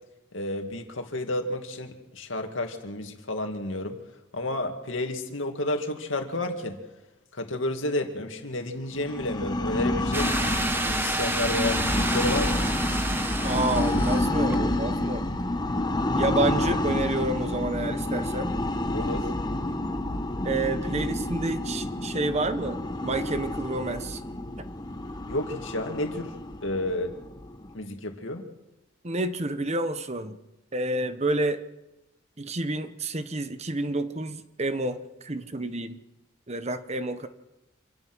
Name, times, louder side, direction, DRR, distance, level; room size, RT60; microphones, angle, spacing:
voice 1, 0.3-4.0 4.3-6.8 7.3-10.4 10.8-12.7 18.9-19.3 25.3-27.2 27.7-28.4, left 1 dB, 70° left, 4 dB, 2.4 m, -31 dB
sound 1, 9.0-27.7, left 1 dB, 20° left, 1.2 m, -29 dB
sound 2, 10.1-14.2 14.5-14.6, right 2 dB, 10° right, 1.3 m, -29 dB
voice 2, 13.4-15.3 16.2-18.5 20.4-24.2 29.0-30.4 30.7-31.6 32.4-36.0 36.5-37.3, right 2 dB, 35° right, 11 dB, 1.1 m, -29 dB
26.5 x 17.0 x 6.3 m, 1.0 s
head